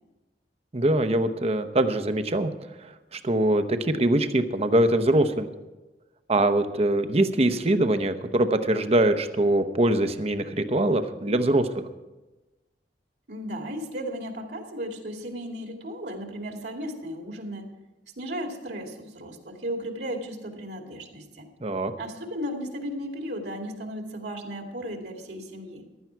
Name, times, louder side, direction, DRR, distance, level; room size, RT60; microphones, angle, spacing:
voice 1, 0.7-2.5 2.8-5.5 6.3-11.8 21.6-21.9, right 1 dB, 35° right, 9 dB, 0.8 m, -23 dB
voice 2, 13.3-17.7 18.2-21.5 22.0-25.8, equal, 65° right, 3 dB, 2.4 m, -35 dB
15.5 x 12.0 x 4.6 m, 1.1 s
head